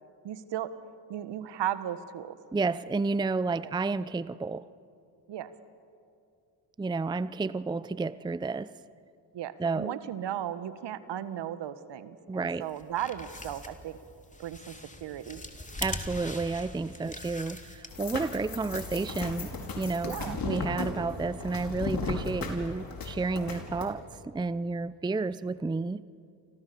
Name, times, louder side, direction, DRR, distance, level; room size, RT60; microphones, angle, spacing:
voice 1, 0.2-0.7 1.1-2.4 3.6-3.7 5.3-5.5 9.3-14.0 14.4-15.4 17.0-17.1 20.0-20.4, right 11 dB, 60° right, 13 dB, 1.6 m, -36 dB
voice 2, 2.5-4.7 6.8-8.7 9.6-10.0 12.3-12.7 15.8-26.0, right 3 dB, 10° right, 17 dB, 0.6 m, -31 dB
sound 1, 12.7-18.2, left 2 dB, 15° left, 3.1 m, -41 dB
sound 2, 17.9-23.9, left 4 dB, 45° left, 4.9 m, -36 dB
30.0 x 25.5 x 7.1 m, 2.5 s
hypercardioid pair, 55°, 47 cm